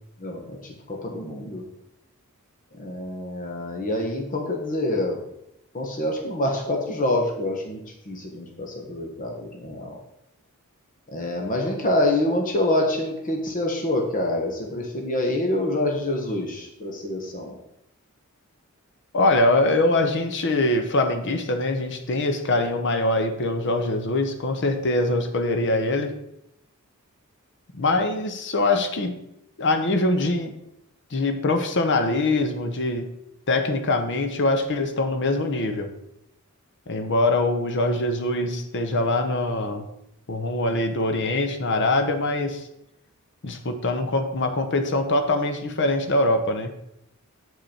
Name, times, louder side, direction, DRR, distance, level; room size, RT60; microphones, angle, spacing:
voice 1, 0.2-0.6 0.9-1.6 2.8-5.2 5.7-10.0 11.1-17.6, left 1 dB, 40° left, 1 dB, 1.2 m, -26 dB
voice 2, 19.1-26.2 27.7-29.2 29.6-30.5 31.1-33.1 33.5-35.9 36.9-39.9 40.3-42.6 43.4-46.7, left 2 dB, 55° left, 7 dB, 0.9 m, -23 dB
7.5 x 5.4 x 4.3 m, 0.81 s
head